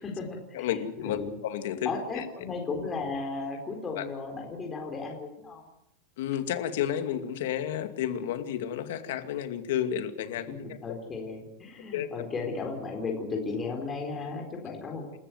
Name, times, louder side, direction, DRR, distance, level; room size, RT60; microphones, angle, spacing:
voice 1, 0.0-0.8 1.0-1.4 1.8-5.6 10.5-15.0, left 4 dB, 15° left, 1 dB, 4.1 m, -35 dB
voice 2, 0.5-2.2 4.0-4.1 6.2-10.8 11.9-12.1, left 10 dB, 70° left, 9 dB, 2.5 m, -31 dB
28.5 x 14.0 x 9.4 m, 0.79 s
supercardioid pair, 180°, 0 cm